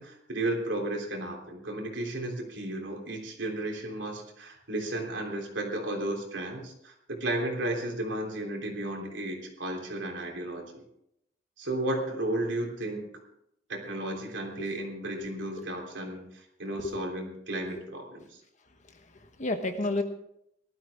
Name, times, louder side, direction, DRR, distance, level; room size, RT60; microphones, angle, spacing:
voice 1, 0.0-10.9 11.6-13.2 13.7-18.4, right 1 dB, 80° right, 1 dB, 3.3 m, -34 dB
voice 2, 16.7-17.0 18.9-20.0, left 2 dB, 40° left, 7 dB, 1.3 m, -32 dB
18.5 x 12.5 x 3.6 m, 0.77 s
head